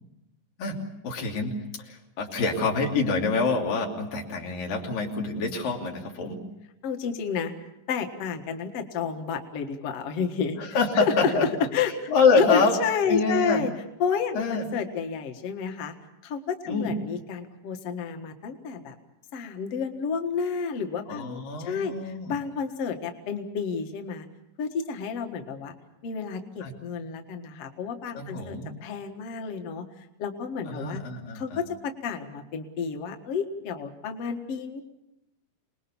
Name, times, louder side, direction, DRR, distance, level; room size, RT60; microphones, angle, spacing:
voice 1, 1.0-6.4 10.6-11.5 12.1-12.8 13.1-13.6 14.4-14.7 16.7-16.9 21.1-22.3 26.6-26.7 28.1-28.7 30.7-31.6, left 4 dB, 85° left, 1 dB, 4.6 m, -26 dB
voice 2, 6.8-7.5 7.9-11.4 11.7-12.1 12.4-13.7 14.0-15.9 16.2-19.0 19.3-24.3 24.6-25.7 26.0-31.0 31.3-34.8, left 6 dB, 50° left, 5 dB, 2.4 m, -30 dB
27.5 x 20.5 x 7.1 m, 0.92 s
omnidirectional pair, 3.9 m